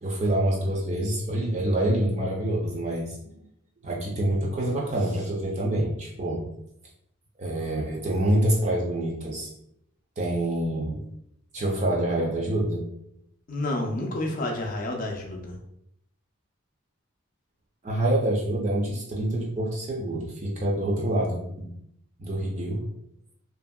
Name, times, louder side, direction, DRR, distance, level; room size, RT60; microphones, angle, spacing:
voice 1, 0.0-3.2 3.8-6.5 7.4-9.5 10.2-11.0 11.5-12.9 17.8-21.7 22.2-22.8, right 1 dB, 35° right, -2 dB, 0.4 m, -26 dB
voice 2, 13.5-15.6, left 1 dB, 40° left, 1 dB, 0.4 m, -30 dB
2.8 x 2.6 x 2.3 m, 0.75 s
head